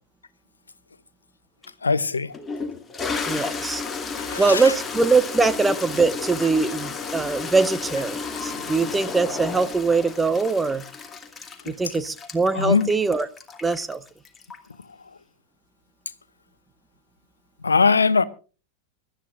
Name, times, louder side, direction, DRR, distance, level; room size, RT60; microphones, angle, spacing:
Toilet flush, 1.6-1.7 2.3-14.8, left 5 dB, 15° left, 2.5 m, -32 dB
voice 1, 1.8-2.3 4.1-4.7 11.7-11.8 12.5-12.9 17.6-18.2, left 4 dB, 75° left, 0.9 m, -21 dB
voice 2, 3.3-3.8 4.4-10.8 11.7-13.3 13.6-14.0, right 4 dB, 10° right, 1.1 m, -22 dB
25.0 x 13.0 x 2.5 m
figure-of-eight pair, 90°, 0 cm